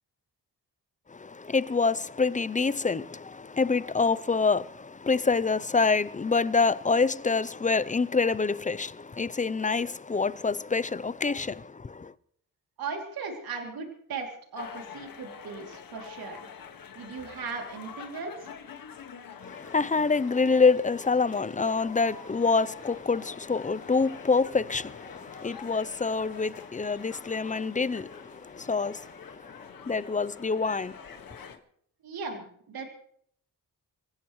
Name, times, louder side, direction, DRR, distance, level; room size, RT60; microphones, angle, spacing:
voice 1, 1.1-12.1 19.4-31.5, left 4 dB, 20° left, 0.6 m, -27 dB
voice 2, 12.8-16.5 16.9-18.5 32.0-32.9, right 4 dB, 80° right, 3.1 m, -37 dB
sound 1, 14.6-31.6, left 7 dB, 70° left, 1.8 m, -46 dB
25.5 x 15.5 x 3.2 m
cardioid pair, 85°, 36 cm